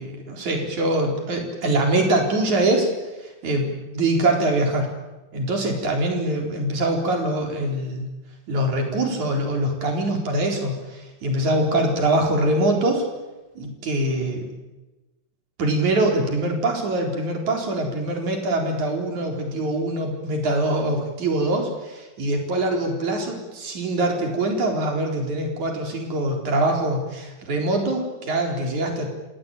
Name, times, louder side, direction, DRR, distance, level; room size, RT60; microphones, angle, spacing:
voice 1, 0.0-2.9 3.2-4.9 5.3-8.1 8.5-13.1 13.6-14.5 15.6-29.1, right 1 dB, 80° right, 2 dB, 5.6 m, -23 dB
29.0 x 17.5 x 9.1 m, 1.1 s
omnidirectional pair, 3.3 m